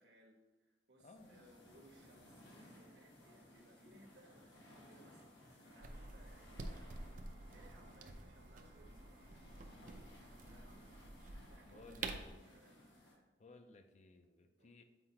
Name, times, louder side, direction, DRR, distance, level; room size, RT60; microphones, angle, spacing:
voice 1, 0.0-6.9 7.4-12.2 12.4-13.3 14.6-14.8, right 1 dB, 70° right, 0 dB, 1.2 m, -66 dB
voice 2, 1.0-1.5 11.6-12.5 13.4-14.8, left 2 dB, 40° left, 7 dB, 0.4 m, -60 dB
sound 1, 1.2-13.1, left 1 dB, 90° left, 1.5 m, -61 dB
Organ, 5.7-11.7, right 3 dB, 90° right, 1.4 m, -76 dB
sound 2, 5.8-12.3, right 3 dB, 45° right, 0.5 m, -49 dB
7.8 x 4.6 x 2.8 m, 1.2 s
head